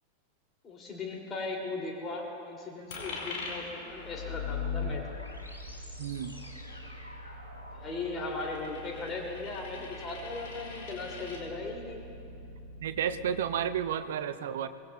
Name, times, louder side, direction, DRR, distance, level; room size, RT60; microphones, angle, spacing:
voice 1, 0.6-5.2 7.7-12.0 14.1-14.2, left 3 dB, 25° left, 0 dB, 2.4 m, -38 dB
Coin (dropping), 2.9-11.4, left 3 dB, 55° left, 4.1 m, -45 dB
sound 1, 3.9-13.9, left 4 dB, 85° left, 2.3 m, -42 dB
voice 2, 6.0-6.3 12.8-14.8, right 9 dB, 60° right, 12 dB, 0.6 m, -32 dB
25.0 x 19.5 x 2.2 m, 2.6 s
figure-of-eight pair, 90°, 0 cm